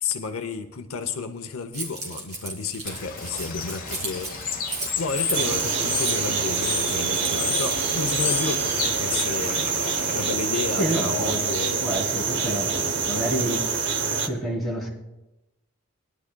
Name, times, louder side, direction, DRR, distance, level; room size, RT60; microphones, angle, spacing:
voice 1, 0.0-11.9, left 4 dB, 70° left, 8 dB, 0.7 m, -32 dB
Keys jangling, 1.7-8.5, right 2 dB, 30° right, 2.6 m, -36 dB
Bird / Water, 2.8-10.3, left 6 dB, 40° left, 1.1 m, -32 dB
sound 1, 5.3-14.3, right 5 dB, 50° right, 0.8 m, -26 dB
voice 2, 10.8-11.4 11.8-13.7 14.2-14.9, right 1 dB, ahead, -6 dB, 2.9 m, -28 dB
21.5 x 11.5 x 2.2 m, 0.98 s
head